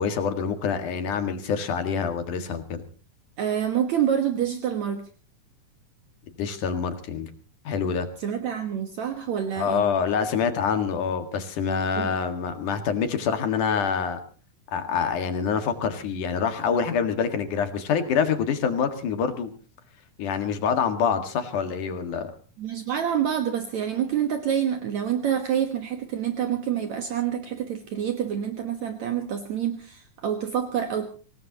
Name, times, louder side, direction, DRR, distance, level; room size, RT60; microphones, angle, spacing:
voice 1, 0.0-2.8 6.4-7.3 7.6-8.1 9.6-14.2 14.7-19.5 20.2-22.3, left 6 dB, 70° left, 7 dB, 3.3 m, -26 dB
voice 2, 3.4-5.0 8.2-9.8 12.0-12.1 22.6-31.1, right 9 dB, 65° right, 6 dB, 2.5 m, -27 dB
25.5 x 18.5 x 2.9 m, 0.38 s
omnidirectional pair, 3.8 m